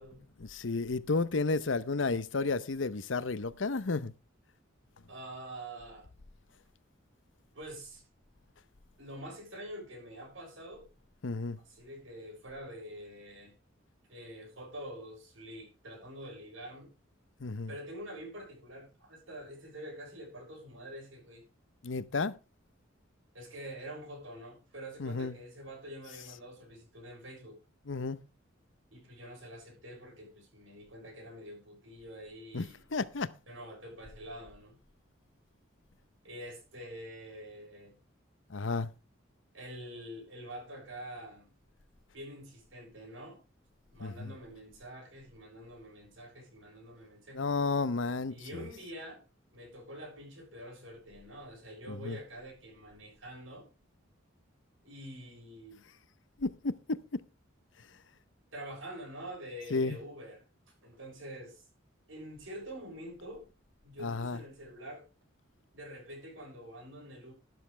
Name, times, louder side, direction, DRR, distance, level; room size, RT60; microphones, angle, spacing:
voice 1, 0.4-4.1 11.2-11.6 17.4-17.7 21.8-22.4 25.0-25.3 27.9-28.2 32.5-33.3 38.5-38.9 44.0-44.3 47.3-48.6 51.9-52.2 56.4-57.2 59.7-60.0 64.0-64.4, left 3 dB, 75° left, 0.8 m, -32 dB
voice 2, 5.1-6.1 7.5-8.1 9.0-10.9 11.6-13.5 14.1-16.9 17.7-21.5 23.3-27.6 28.9-32.8 33.5-34.8 36.2-38.0 39.5-41.5 42.1-43.4 43.9-47.5 48.3-49.2 49.5-53.7 54.8-55.9 58.5-60.4 60.8-61.6 62.1-63.5 63.8-65.0 65.7-67.3, right 1 dB, 85° right, 6.6 m, -46 dB
12.5 x 12.0 x 3.3 m
head